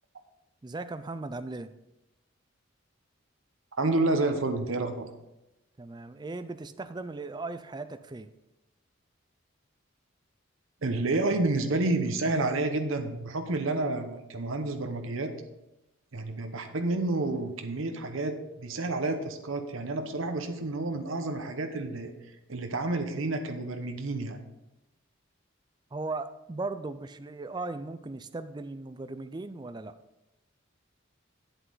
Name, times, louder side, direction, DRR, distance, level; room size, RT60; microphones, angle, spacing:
voice 1, 0.6-1.7 5.8-8.3 25.9-30.0, right 3 dB, 20° right, 11 dB, 0.4 m, -37 dB
voice 2, 3.8-5.1 10.8-15.3 16.1-22.1 22.5-24.4, right 2 dB, 75° right, 6 dB, 0.9 m, -29 dB
8.2 x 7.9 x 4.0 m, 0.94 s
head